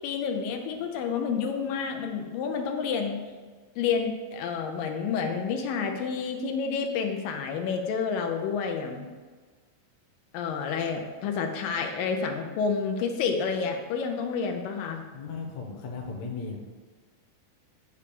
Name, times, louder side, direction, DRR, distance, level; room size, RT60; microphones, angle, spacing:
voice 1, 0.0-3.2 3.8-9.1 10.3-15.0, left 5 dB, 85° left, 3 dB, 2.5 m, -29 dB
voice 2, 15.1-16.6, left 4 dB, 60° left, 0 dB, 2.1 m, -36 dB
9.7 x 3.3 x 6.8 m, 1.4 s
omnidirectional pair, 3.9 m